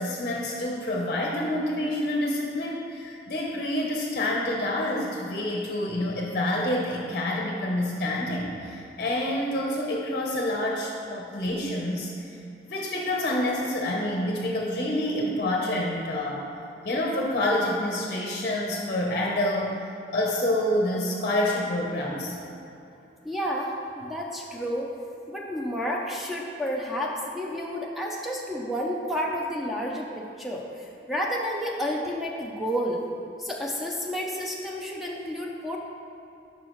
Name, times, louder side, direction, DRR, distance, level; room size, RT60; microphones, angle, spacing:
voice 1, 0.0-12.4 12.6-16.5 16.8-19.8 20.1-22.4, left 1 dB, 45° left, -1 dB, 0.7 m, -27 dB
voice 2, 23.2-24.9 25.3-33.0 33.4-35.8, equal, ahead, -2 dB, 0.5 m, -30 dB
10.5 x 5.6 x 3.0 m, 2.7 s
head